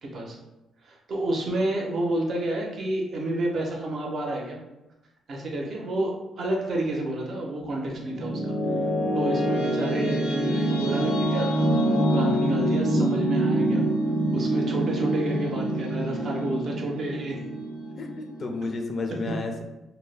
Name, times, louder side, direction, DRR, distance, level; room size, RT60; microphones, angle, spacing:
voice 1, 0.0-0.4 0.8-4.6 5.3-8.5 9.1-13.8 14.3-17.4 19.3-19.4, right 1 dB, 55° right, 0 dB, 0.6 m, -30 dB
sound 1, 7.6-18.7, right 1 dB, 85° left, 0.6 m, -25 dB
voice 2, 18.0-19.6, left 3 dB, 45° left, 3 dB, 0.4 m, -31 dB
2.1 x 2.0 x 3.2 m, 0.98 s
cardioid pair, 90°, 0 cm